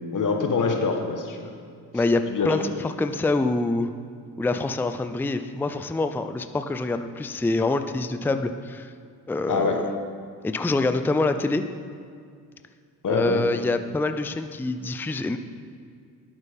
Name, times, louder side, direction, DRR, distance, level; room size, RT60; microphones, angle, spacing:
voice 1, 0.1-1.5 1.9-2.6 9.5-9.8 13.0-13.4, left 5 dB, 50° left, 3 dB, 1.4 m, -25 dB
voice 2, 1.9-3.9 4.4-8.9 9.3-9.9 10.4-11.6 13.1-15.4, left 2 dB, 5° left, 9 dB, 0.4 m, -25 dB
10.5 x 8.1 x 3.6 m, 2.2 s
supercardioid pair, 50°, 40 cm